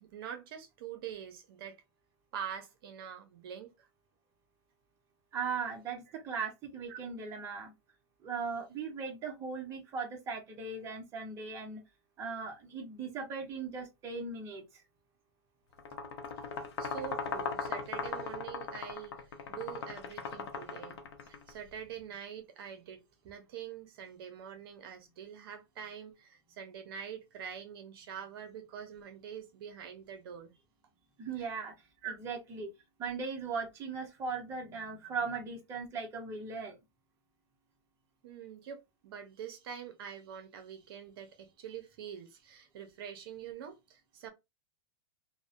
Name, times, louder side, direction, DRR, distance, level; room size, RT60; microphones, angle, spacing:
voice 1, 0.0-1.8 2.3-3.9 6.9-7.0 15.9-16.0 16.8-30.5 32.0-32.2 38.2-44.3, right 8 dB, 60° right, 0.6 m, -45 dB
voice 2, 5.3-7.7 8.2-11.8 12.2-14.6 31.2-31.7 32.1-32.7 33.0-36.8, right 5 dB, 20° right, 0.6 m, -38 dB
sound 1, 15.8-21.5, left 5 dB, 75° left, 0.6 m, -39 dB
2.6 x 2.1 x 2.5 m
supercardioid pair, 155°, 14 cm